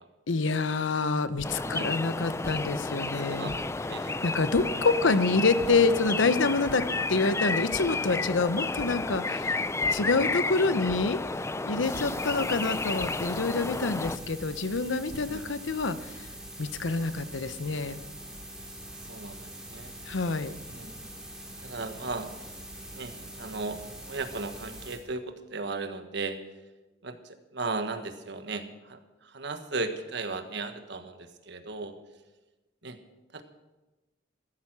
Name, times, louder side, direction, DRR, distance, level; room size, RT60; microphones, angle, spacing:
voice 1, 0.3-3.5 4.2-9.6 9.9-11.2 11.6-16.2 16.6-18.0 20.0-20.5, left 3 dB, 80° left, 12 dB, 0.9 m, -27 dB
sound 1, 1.4-1.5 2.4-2.5 3.5-3.6 4.5-4.6 5.6-5.7 6.6-6.7 7.2-7.4 7.7-7.8 8.7-8.8 9.8-9.9 10.9-11.0 11.9-12.0 13.0-13.1 14.0-14.1 14.8-15.2, equal, 65° left, 2.0 m, -41 dB
sound 2, 1.4-14.2, left 3 dB, 15° left, 0.4 m, -31 dB
voice 2, 1.6-1.9 3.0-4.3 5.0-5.2 15.3-15.4 19.1-19.9 20.7-20.9 21.6-22.3 22.9-26.4 27.0-31.9 32.8-33.0 33.3-33.4, right 3 dB, 65° right, 8 dB, 1.4 m, -36 dB
sound 3, 11.8-25.0, right 1 dB, 5° right, 3.0 m, -44 dB
15.5 x 13.5 x 6.2 m, 1.1 s
head